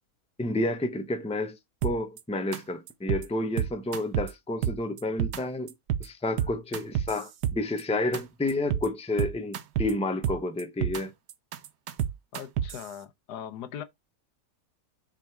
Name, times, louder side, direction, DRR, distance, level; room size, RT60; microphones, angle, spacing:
voice 1, 0.4-1.6 1.8-5.7 6.0-11.1, left 2 dB, 5° left, 0.7 m, -30 dB
sound 1, 1.8-2.2 2.5-2.6 2.9-3.3 3.6-4.3 4.6-5.4 5.7-6.1 6.4-7.8 8.1-8.2 8.5-8.9 9.2-9.9 10.2-11.0 11.3-12.8, right 10 dB, 90° right, 1.4 m, -29 dB
voice 2, 12.3-13.8, left 9 dB, 80° left, 1.3 m, -40 dB
7.7 x 3.7 x 4.6 m
omnidirectional pair, 1.7 m